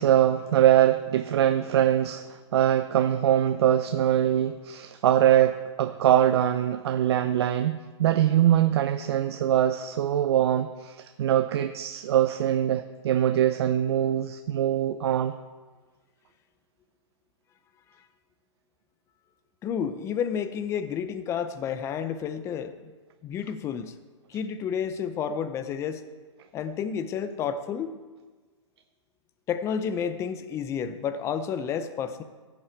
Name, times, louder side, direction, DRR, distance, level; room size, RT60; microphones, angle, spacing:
voice 1, 0.0-15.3, right 11 dB, 55° right, 9 dB, 0.6 m, -23 dB
voice 2, 19.6-22.9 23.2-23.9 24.3-26.0 26.5-28.0 29.5-32.2, left 7 dB, 15° left, 11 dB, 0.6 m, -30 dB
15.5 x 7.3 x 4.5 m, 1.4 s
hypercardioid pair, 140°, 16 cm